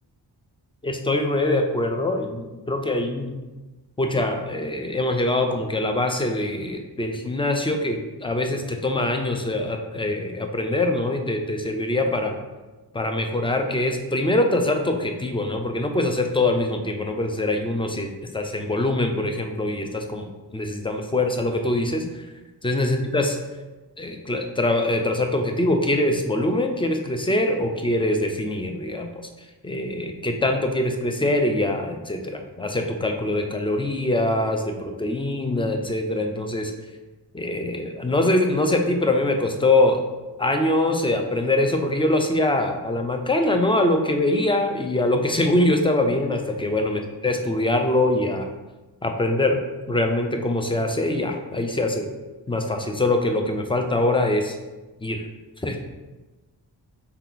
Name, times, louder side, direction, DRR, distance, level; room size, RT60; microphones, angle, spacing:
voice 1, 0.8-3.3 4.0-12.4 12.9-20.3 20.5-22.0 22.6-23.4 24.0-29.2 29.6-36.7 37.3-40.0 40.4-48.5 49.0-49.6 49.9-52.1 52.5-54.6 55.0-55.2 55.6-55.8, left 1 dB, 10° left, 4 dB, 0.5 m, -23 dB
4.6 x 2.9 x 3.9 m, 1.2 s
cardioid pair, 65°, 43 cm